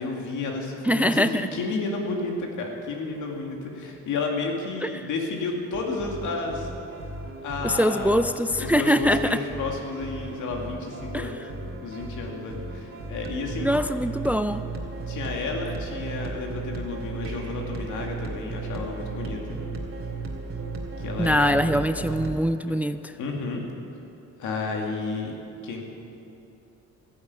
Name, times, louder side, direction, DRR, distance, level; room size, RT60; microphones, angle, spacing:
voice 1, 0.0-1.2 1.5-6.7 7.4-8.2 8.6-11.4 11.8-13.7 15.1-19.6 21.0-21.6 22.7-22.8 23.2-23.7 24.4-25.3 25.6-25.8, left 3 dB, 80° left, 1 dB, 2.4 m, -31 dB
voice 2, 0.8-1.5 4.8-4.9 7.6-9.4 11.1-11.3 13.6-14.6 21.2-23.1, equal, 5° right, 11 dB, 0.4 m, -23 dB
sound 1, 5.7-22.4, right 3 dB, 45° right, 2.4 m, -35 dB
14.0 x 10.5 x 8.2 m, 2.7 s
cardioid pair, 90°, 30 cm